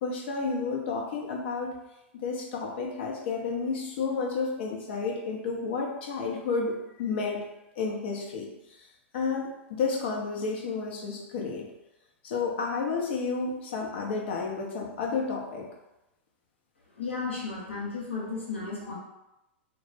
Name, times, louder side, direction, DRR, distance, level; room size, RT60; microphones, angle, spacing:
voice 1, 0.0-1.7 2.1-7.5 7.8-8.5 9.1-11.7 12.2-15.7, left 4 dB, 60° left, 0 dB, 0.6 m, -31 dB
voice 2, 16.9-19.0, left 4 dB, 80° left, -5 dB, 1.0 m, -34 dB
2.1 x 2.0 x 3.1 m, 0.93 s
figure-of-eight pair, 100°, 7 cm